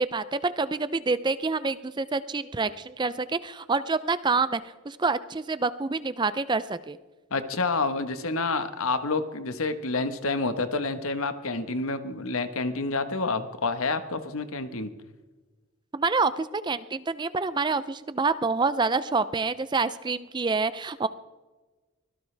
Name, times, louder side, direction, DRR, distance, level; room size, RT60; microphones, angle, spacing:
voice 1, 0.0-4.6 4.9-7.0 15.9-21.1, right 4 dB, 20° right, 14 dB, 0.4 m, -27 dB
voice 2, 7.3-14.9, left 3 dB, 70° left, 9 dB, 1.2 m, -28 dB
24.0 x 17.0 x 3.4 m, 1.3 s
head